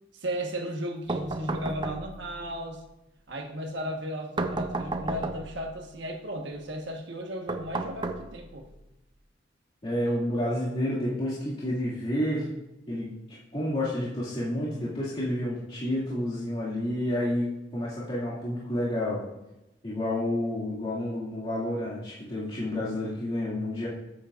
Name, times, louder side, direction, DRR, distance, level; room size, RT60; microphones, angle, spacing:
voice 1, 0.1-2.8 3.3-8.7, equal, 65° right, 2 dB, 1.4 m, -35 dB
sound 1, 1.1-2.4 4.4-5.7 7.5-8.7, right 2 dB, 25° right, 0.5 m, -32 dB
voice 2, 9.8-12.5 12.9-13.2 13.5-19.2 19.8-23.9, left 1 dB, 30° left, -9 dB, 2.3 m, -30 dB
13.5 x 8.6 x 2.5 m, 0.94 s
head